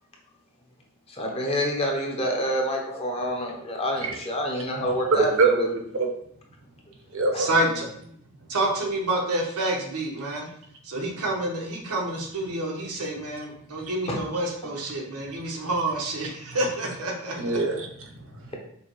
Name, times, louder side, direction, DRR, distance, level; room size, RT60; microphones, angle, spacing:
voice 1, 1.1-5.7 14.1-14.2, equal, 25° left, 0 dB, 0.7 m, -27 dB
voice 2, 5.1-5.7 5.9-6.1 7.1-7.5 16.5-16.6 17.4-18.5, right 3 dB, 60° right, 2 dB, 0.8 m, -24 dB
voice 3, 7.4-7.8 8.5-10.5 10.8-17.5, right 1 dB, 90° right, -1 dB, 1.0 m, -28 dB
5.4 x 2.2 x 3.0 m, 0.68 s
head